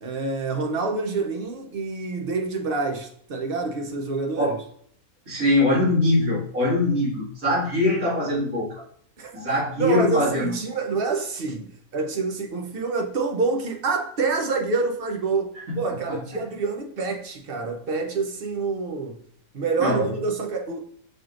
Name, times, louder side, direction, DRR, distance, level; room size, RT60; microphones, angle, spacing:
voice 1, 0.0-4.6 9.2-9.3 9.8-19.2 19.5-20.8, right 4 dB, 55° right, 0.7 m, -27 dB
voice 2, 5.3-8.7 9.3-10.5 16.1-16.2 19.8-20.1, left 1 dB, 80° right, 2.3 m, -22 dB
6.1 x 3.1 x 2.5 m
omnidirectional pair, 1.5 m